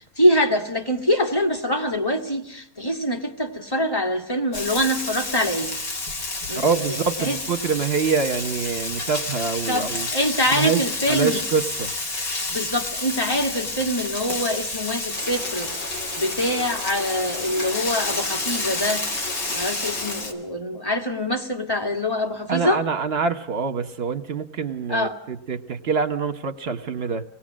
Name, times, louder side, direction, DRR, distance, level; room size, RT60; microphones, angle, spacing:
voice 1, 0.2-5.7 6.5-7.4 9.7-11.4 12.5-19.0 19.5-22.8 24.9-25.2, equal, 10° left, 6 dB, 1.6 m, -24 dB
Frying (food), 4.5-20.3, left 3 dB, 45° left, 2.8 m, -30 dB
voice 2, 6.5-10.1 10.5-10.8 11.1-11.9 22.5-27.2, right 5 dB, 40° right, 9 dB, 1.0 m, -25 dB
sound 1, 15.1-20.2, left 1 dB, 60° left, 6.3 m, -36 dB
26.0 x 19.0 x 7.5 m, 0.78 s
omnidirectional pair, 2.1 m